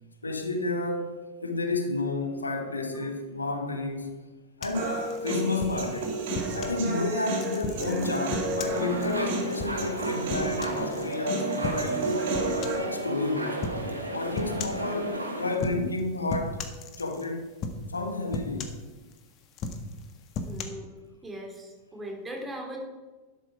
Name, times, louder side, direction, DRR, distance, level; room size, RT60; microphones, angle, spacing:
voice 1, 0.2-4.2 4.6-6.1 6.5-12.3 12.8-13.6 14.1-16.6 17.0-17.5 17.9-18.7, left 2 dB, 80° left, 1.5 m, -31 dB
sound 1, 4.6-6.8 7.4-11.2 11.6-12.0 12.3-12.9 13.6-13.9 14.4-14.9 15.5-16.0 16.3-17.3 17.6-18.0 18.3-19.2 19.5-20.6, left 4 dB, 35° left, 1.6 m, -36 dB
Human voice, 4.7-12.8, right 2 dB, 50° right, 3.8 m, -32 dB
sound 2, 8.7-15.6, right 2 dB, 80° right, 2.0 m, -33 dB
voice 2, 20.4-20.9 21.2-22.8, right 1 dB, 10° right, 3.3 m, -39 dB
12.0 x 11.0 x 4.8 m
figure-of-eight pair, 90°, 0 cm